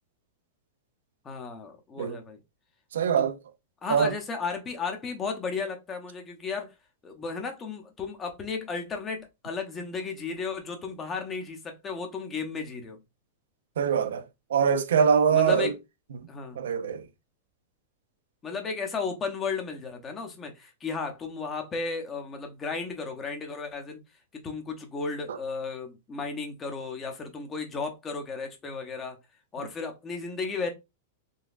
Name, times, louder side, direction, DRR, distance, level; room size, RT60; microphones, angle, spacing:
voice 1, 1.2-2.4 3.2-3.3 3.8-6.7 7.0-13.0 15.3-15.7 16.3-16.6 18.4-24.0 24.4-29.2 29.5-30.7, left 4 dB, 20° left, 0.8 m, -34 dB
voice 2, 2.9-3.4 3.9-4.1 13.8-14.2 14.5-15.7 16.1-16.3 16.6-17.1 25.3-25.4, right 7 dB, 85° right, 0.5 m, -23 dB
3.9 x 2.2 x 2.5 m
hypercardioid pair, 140°, 0 cm